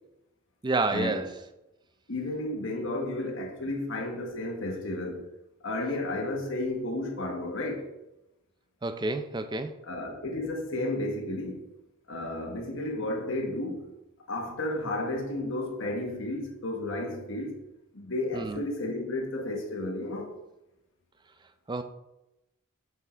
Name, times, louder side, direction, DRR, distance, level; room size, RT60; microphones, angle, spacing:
voice 1, 0.6-1.4 8.8-9.7 18.3-18.6 21.7-21.8, right 3 dB, 20° right, 0.4 m, -29 dB
voice 2, 2.1-5.2 5.6-7.8 9.8-11.6 12.1-13.9 14.3-17.6 17.9-20.3, left 1 dB, 60° left, 1.4 m, -32 dB
6.0 x 6.0 x 4.4 m
head